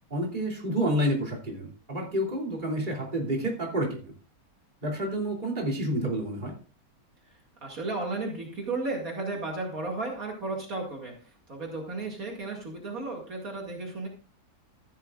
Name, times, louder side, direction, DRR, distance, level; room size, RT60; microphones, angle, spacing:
voice 1, 0.1-4.0 4.8-6.5, right 1 dB, 30° right, -2 dB, 3.2 m, -29 dB
voice 2, 7.3-14.1, right 3 dB, 60° right, -1 dB, 2.7 m, -34 dB
14.5 x 12.5 x 2.5 m, 0.36 s
omnidirectional pair, 1.7 m